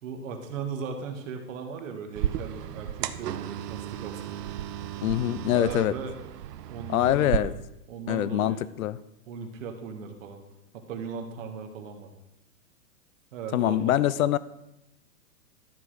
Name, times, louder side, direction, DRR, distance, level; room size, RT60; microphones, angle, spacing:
voice 1, 0.0-4.4 5.5-6.2 6.7-7.5 7.9-8.6 9.3-10.4 10.7-12.1 13.3-14.0, right 6 dB, 50° right, 5 dB, 1.7 m, -37 dB
sound 1, 2.1-7.4, right 11 dB, 75° right, 0.7 m, -34 dB
voice 2, 5.0-5.9 6.9-7.5 8.1-9.0 13.5-14.4, left 13 dB, 60° left, 18 dB, 0.6 m, -24 dB
13.0 x 5.9 x 4.9 m, 0.88 s
hypercardioid pair, 155°, 48 cm